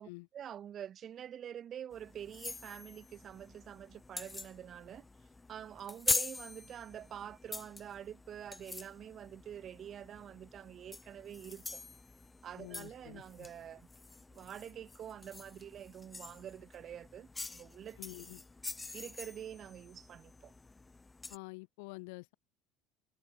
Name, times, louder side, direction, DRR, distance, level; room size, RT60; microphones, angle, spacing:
voice 1, 0.0-5.1 5.5-11.8 12.4-13.9 14.3-18.0 18.9-20.5, right 9 dB, 30° right, 3.5 m, -47 dB
sound 1, 1.9-21.4, left 3 dB, 10° left, 2.0 m, -44 dB
voice 2, 12.6-13.5 18.0-18.4 21.3-22.3, left 30 dB, 85° left, 7.1 m, -48 dB
cardioid pair, 175°, 0 cm